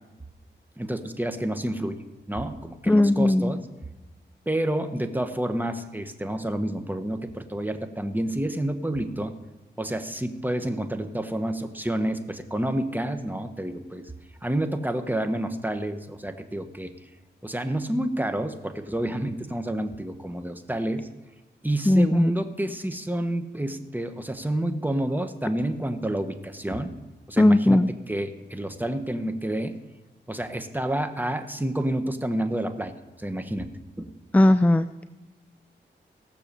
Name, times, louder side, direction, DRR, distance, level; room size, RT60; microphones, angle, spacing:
voice 1, 0.8-3.6 4.4-9.3 9.8-14.1 14.4-16.9 17.4-21.1 21.6-27.0 27.3-27.8 28.1-29.8 30.3-33.7 34.0-34.1, right 1 dB, 10° right, 7 dB, 1.3 m, -29 dB
voice 2, 2.9-3.6 21.9-22.3 27.4-27.9 34.3-35.0, left 1 dB, 10° left, 12 dB, 0.4 m, -18 dB
17.0 x 6.9 x 6.9 m, 1.1 s
cardioid pair, 65°, 19 cm